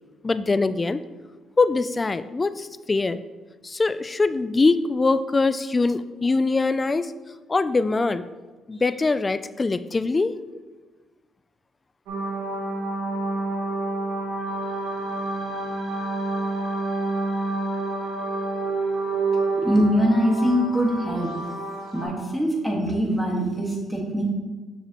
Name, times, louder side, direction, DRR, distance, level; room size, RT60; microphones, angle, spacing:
voice 1, 0.2-1.0 1.6-3.2 3.6-7.1 7.5-8.2 8.7-10.3, left 3 dB, 25° left, 14 dB, 0.3 m, -23 dB
sound 1, 12.1-22.0, right 2 dB, 85° right, 1.6 m, -28 dB
voice 2, 19.5-21.3 21.9-24.2, equal, 5° right, -1 dB, 1.6 m, -23 dB
6.8 x 6.1 x 3.0 m, 1.3 s
cardioid pair, 90°, 0 cm